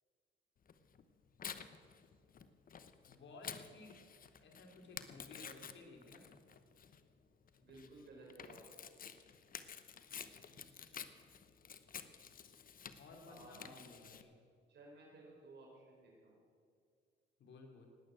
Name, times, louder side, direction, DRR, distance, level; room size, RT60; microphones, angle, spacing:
Tearing, 0.7-14.2, left 7 dB, 45° left, 1.0 m, -51 dB
voice 1, 3.1-4.1 4.4-6.2 10.5-10.6 13.0-14.4 17.4-17.9, left 3 dB, 65° left, 2 dB, 3.2 m, -56 dB
voice 2, 7.6-8.7 13.3-13.7 14.7-16.4, right 2 dB, 60° right, -2 dB, 4.7 m, -57 dB
19.5 x 8.8 x 7.7 m, 2.2 s
cardioid pair, 90°, 20 cm